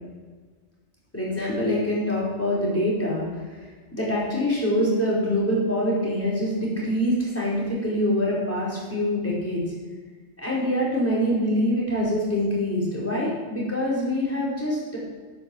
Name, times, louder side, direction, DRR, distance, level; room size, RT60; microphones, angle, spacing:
voice 1, 1.1-3.6 3.9-9.6 10.4-15.0, equal, 10° left, -6 dB, 4.6 m, -25 dB
10.5 x 9.0 x 7.0 m, 1.5 s
omnidirectional pair, 1.2 m